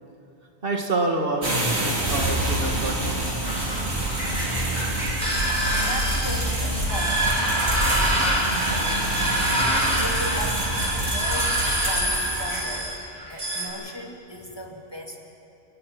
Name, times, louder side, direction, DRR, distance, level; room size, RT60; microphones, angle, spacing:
voice 1, 0.6-3.2, right 2 dB, 60° right, 1 dB, 2.3 m, -27 dB
sound 1, 1.4-12.8, right 1 dB, 75° right, 3.6 m, -27 dB
sound 2, 3.4-13.7, right 1 dB, 40° right, 5.1 m, -26 dB
voice 2, 5.8-9.0 9.9-10.6 10.9-12.9 13.2-15.2, equal, 25° left, 0 dB, 2.3 m, -37 dB
30.0 x 18.0 x 6.1 m, 2.7 s
omnidirectional pair, 1.1 m